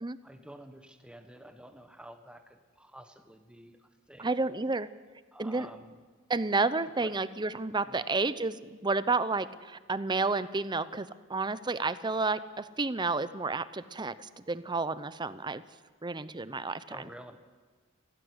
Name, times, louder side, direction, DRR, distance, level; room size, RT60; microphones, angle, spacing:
voice 1, 0.0-4.4 5.3-6.0 6.8-7.2 7.8-8.0 16.8-17.5, right 1 dB, 5° right, 7 dB, 1.5 m, -50 dB
voice 2, 4.2-4.9 5.4-5.7 6.3-15.6 16.0-17.0, right 3 dB, 20° right, 14 dB, 0.7 m, -31 dB
17.5 x 16.0 x 9.5 m, 1.4 s
head